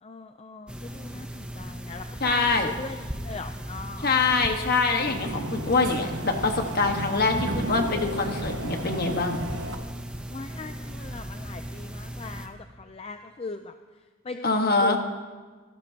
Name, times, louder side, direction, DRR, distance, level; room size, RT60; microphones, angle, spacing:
voice 1, 0.0-4.1 10.3-13.7 14.2-15.0, left 3 dB, 30° left, 7 dB, 0.4 m, -40 dB
sound 1, 0.7-12.5, right 1 dB, 5° right, 0.8 m, -37 dB
voice 2, 2.2-2.7 4.0-9.4 14.4-15.0, left 3 dB, 50° left, 4 dB, 1.4 m, -24 dB
sound 2, 4.7-9.8, right 1 dB, 65° right, 1.2 m, -34 dB
26.0 x 12.5 x 2.9 m, 1.4 s
head